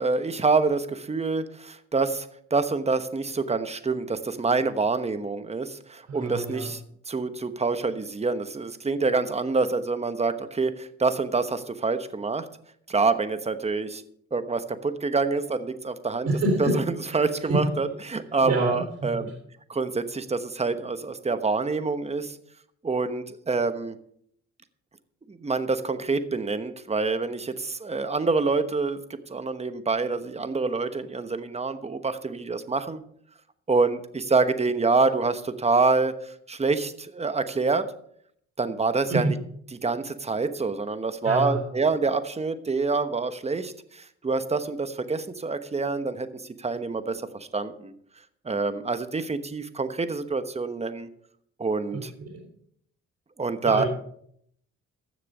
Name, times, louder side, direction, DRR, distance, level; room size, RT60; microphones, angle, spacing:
voice 1, 0.0-6.8 7.1-12.5 12.9-14.0 14.3-16.3 16.6-16.8 17.1-19.3 19.7-22.4 22.8-24.0 25.3-33.0 33.7-37.9 38.6-39.4 39.8-47.9 48.4-51.1 51.6-52.1 53.4-53.9, right 4 dB, 20° right, 10 dB, 1.1 m, -26 dB
voice 2, 6.1-6.7 16.2-16.8 17.2-17.7 18.4-19.3 39.1-39.3 41.2-41.6 51.9-52.4 53.6-53.9, right 2 dB, 60° right, -1 dB, 4.3 m, -27 dB
15.0 x 6.6 x 5.4 m, 0.68 s
cardioid pair, 90°, 30 cm